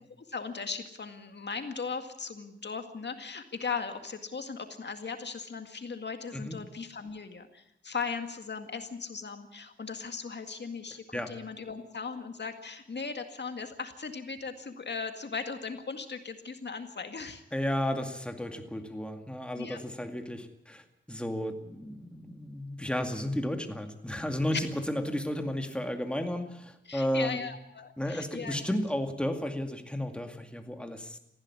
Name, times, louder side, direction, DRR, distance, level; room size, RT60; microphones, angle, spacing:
voice 1, 0.3-17.4 19.5-19.8 26.9-28.6, left 5 dB, 60° left, 6 dB, 2.0 m, -38 dB
voice 2, 17.5-27.4 28.0-31.2, left 1 dB, 5° left, 5 dB, 2.3 m, -33 dB
19.0 x 15.5 x 9.8 m, 0.81 s
wide cardioid pair, 85°, 20 cm